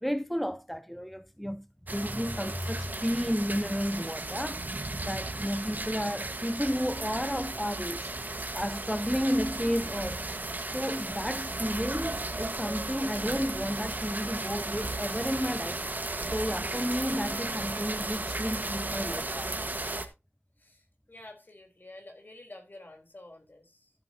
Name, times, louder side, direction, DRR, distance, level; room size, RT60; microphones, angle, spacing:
voice 1, 0.0-4.6 5.0-8.2 8.5-10.3 10.7-15.8 16.3-19.6, equal, ahead, 0.4 m, -32 dB
sound 1, 1.9-20.1, right 2 dB, 45° right, 1.4 m, -35 dB
voice 2, 21.1-23.9, left 2 dB, 50° left, 3.6 m, -49 dB
14.0 x 8.0 x 2.8 m
wide cardioid pair, 70°, 4 cm